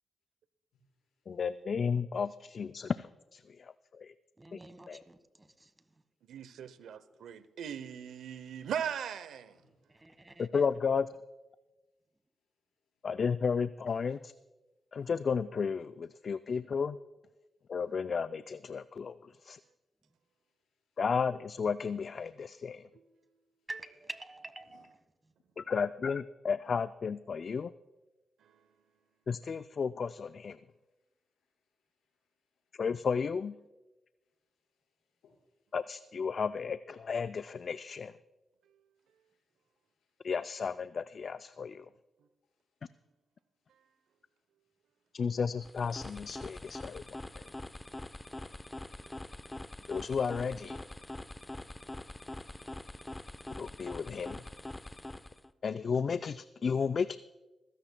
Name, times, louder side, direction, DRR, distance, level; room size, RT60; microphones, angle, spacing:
voice 1, 0.7-1.4 8.6-8.7 9.5-9.9 12.4-13.1 13.9-14.0 15.0-15.1 19.4-19.7 20.2-21.0 23.6-23.7 24.6-24.9 28.5-29.3 30.7-32.8 34.2-35.8 38.9-40.3 42.4-43.1 43.5-45.2 46.5-46.8, left 4 dB, 85° left, 4.7 m, -76 dB
voice 2, 1.3-3.6 4.0-4.1 4.5-4.6 4.9-5.0 10.4-11.1 13.0-14.3 14.9-17.0 17.7-19.6 21.0-22.9 25.6-27.7 29.3-30.6 32.8-33.6 35.7-38.1 40.2-41.9 45.1-47.0 47.4-47.5 49.9-50.8 53.6-54.4 55.6-57.2, left 6 dB, 60° left, 0.3 m, -33 dB
voice 3, 4.4-5.7 9.6-10.6 23.7-24.9, right 2 dB, 25° right, 1.4 m, -47 dB
voice 4, 6.3-9.6 22.9-23.1 28.4-28.6 49.0-49.1, right 8 dB, 80° right, 0.7 m, -39 dB
sound 1, 45.6-55.5, left 1 dB, 20° left, 0.7 m, -44 dB
22.0 x 15.5 x 2.2 m
supercardioid pair, 40°, 0 cm